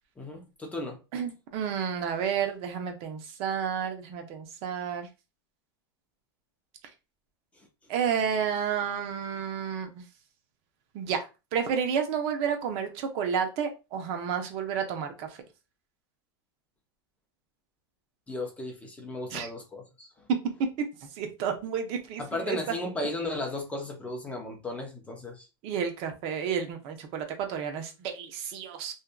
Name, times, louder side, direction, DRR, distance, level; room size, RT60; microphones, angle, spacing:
voice 1, 0.2-1.0 18.3-20.1 22.2-25.5, left 2 dB, 10° left, 0.6 m, -35 dB
voice 2, 1.1-5.1 7.9-10.0 10.9-11.3 11.5-15.3 19.3-19.5 21.2-22.6 25.6-28.9, right 7 dB, 50° right, 0.6 m, -31 dB
2.7 x 2.3 x 2.2 m
supercardioid pair, 135°, 13 cm